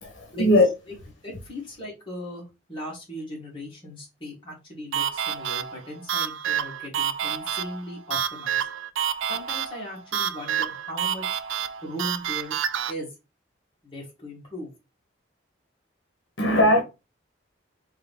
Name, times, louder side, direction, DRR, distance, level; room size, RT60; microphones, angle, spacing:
voice 1, 0.0-0.7 16.4-16.8, left 1 dB, 75° left, 0.9 m, -19 dB
voice 2, 1.2-2.4 2.7-8.7 9.3-11.4 11.8-12.6 12.9-13.1 13.8-14.7, left 1 dB, 25° left, 2.1 m, -38 dB
sound 1, 4.9-12.9, right 9 dB, 75° right, 0.4 m, -29 dB
3.6 x 3.1 x 3.6 m
head